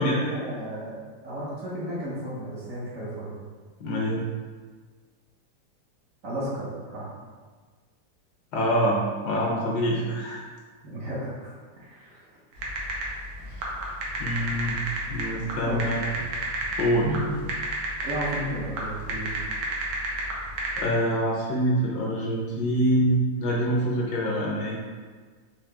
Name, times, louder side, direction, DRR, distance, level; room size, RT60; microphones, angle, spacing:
voice 1, 0.0-3.4 6.2-7.2 10.8-11.5 11.8-12.4 15.7-15.8 17.0-17.3 18.0-19.4, right 1 dB, 50° right, -7 dB, 1.1 m, -34 dB
voice 2, 3.8-4.2 8.5-9.0 9.2-10.4 13.6-13.7 14.2-14.8 15.1-16.0 16.8-17.1 20.8-24.9, equal, 65° left, -2 dB, 1.2 m, -25 dB
sound 1, 12.6-20.8, right 2 dB, 90° right, 1.6 m, -31 dB
4.8 x 3.2 x 3.4 m, 1.5 s
omnidirectional pair, 2.1 m